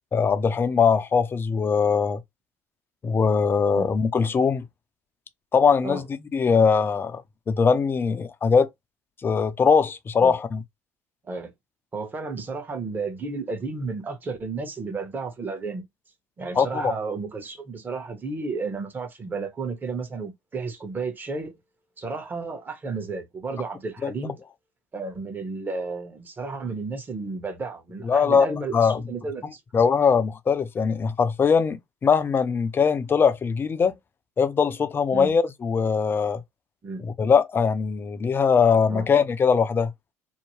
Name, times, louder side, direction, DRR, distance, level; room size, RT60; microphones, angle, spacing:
voice 1, 0.1-2.2 3.0-4.7 5.5-6.1 6.3-7.2 7.5-8.7 9.2-10.6 16.6-16.9 24.0-24.1 28.0-29.0 29.7-33.9 34.4-36.4 37.0-39.9, left 6 dB, 30° left, 0.5 m, -21 dB
voice 2, 11.9-15.8 16.4-21.5 22.0-24.4 24.9-29.6 35.1-35.3 36.8-37.0 38.9-39.1, right 4 dB, 25° right, 1.0 m, -32 dB
2.7 x 2.1 x 3.1 m
supercardioid pair, 80°, 7 cm